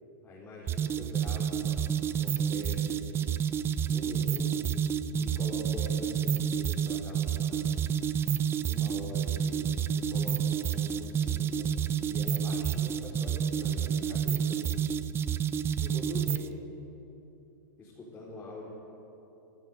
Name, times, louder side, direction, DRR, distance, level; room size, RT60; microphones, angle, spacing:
voice 1, 0.2-1.8 2.2-3.3 3.9-4.7 5.1-7.9 8.5-11.7 12.1-14.8 15.8-16.5 17.8-18.7, left 1 dB, 15° left, -6 dB, 4.8 m, -44 dB
sound 1, 0.7-16.5, right 8 dB, 20° right, 0.7 m, -29 dB
28.0 x 13.0 x 8.2 m, 3.0 s
hypercardioid pair, 130°, 11 cm